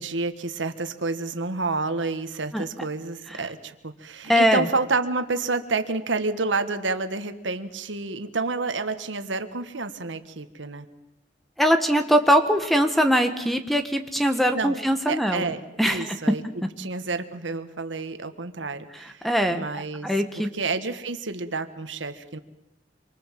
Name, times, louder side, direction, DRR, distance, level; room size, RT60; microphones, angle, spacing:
voice 1, 0.0-10.9 14.5-14.8 15.1-16.4 16.8-20.1 20.4-22.4, right 3 dB, 85° right, 9 dB, 1.6 m, -29 dB
voice 2, 4.3-4.7 11.6-15.5 15.8-16.2 18.9-19.7 20.0-20.5, equal, ahead, 7 dB, 1.5 m, -22 dB
26.5 x 24.0 x 7.6 m, 0.92 s
head